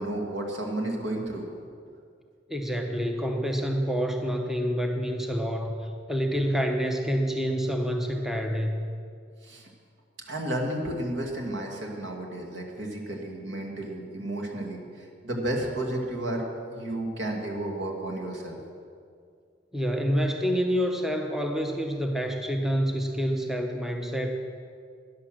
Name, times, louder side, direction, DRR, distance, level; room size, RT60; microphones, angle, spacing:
voice 1, 0.0-1.5 9.4-9.7 10.3-16.4 16.7-18.6, right 1 dB, 75° right, 1 dB, 2.2 m, -32 dB
voice 2, 2.5-8.8 19.7-24.3, equal, ahead, 3 dB, 0.8 m, -27 dB
12.0 x 10.5 x 6.5 m, 2.2 s
head